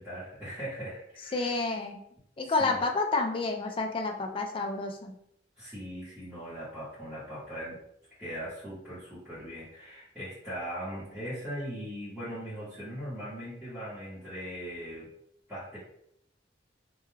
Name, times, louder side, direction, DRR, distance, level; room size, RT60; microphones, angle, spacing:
voice 1, 0.0-1.6 2.4-2.8 5.6-7.8 8.2-15.1 15.5-15.8, equal, 5° right, -14 dB, 1.0 m, -40 dB
voice 2, 1.3-2.0 2.4-5.1, left 3 dB, 30° left, 3 dB, 0.3 m, -29 dB
2.3 x 2.3 x 3.1 m, 0.72 s
head